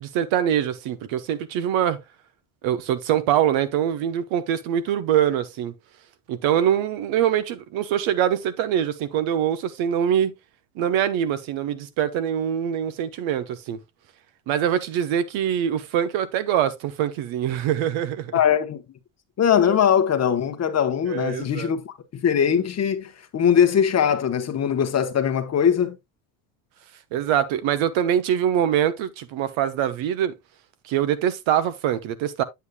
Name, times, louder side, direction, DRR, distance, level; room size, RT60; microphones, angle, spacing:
voice 1, 0.0-2.0 2.6-5.7 6.3-10.3 10.8-13.8 14.5-18.4 21.1-21.7 27.1-30.3 30.8-32.4, right 10 dB, 65° right, 1.1 m, -24 dB
voice 2, 18.3-18.8 19.4-26.0, left 8 dB, 30° left, 1.0 m, -21 dB
8.2 x 8.1 x 2.3 m
cardioid pair, 130°, 50 cm